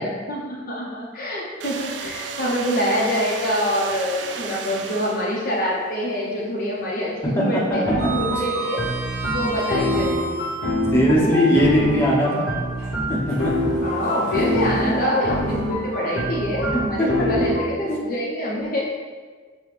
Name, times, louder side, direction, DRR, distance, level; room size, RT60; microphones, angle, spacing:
voice 1, 0.0-7.8 8.1-8.8 9.3-10.4 13.8-19.0, equal, 50° left, -3 dB, 0.7 m, -25 dB
sound 1, 1.6-5.6, right 5 dB, 70° right, 0.4 m, -33 dB
Sliding door, 2.1-2.6 3.0-3.1 4.8-5.9 6.2-6.5 6.8-10.9 11.6-16.8, right 4 dB, 55° right, 1.4 m, -36 dB
voice 2, 7.4-7.8 10.9-12.5 13.1-13.5 14.8-15.2 16.7-17.3, equal, 15° left, -5 dB, 0.8 m, -20 dB
sound 2, 7.7-17.6, equal, 80° left, 1.1 m, -25 dB
6.6 x 2.2 x 3.2 m, 1.5 s
head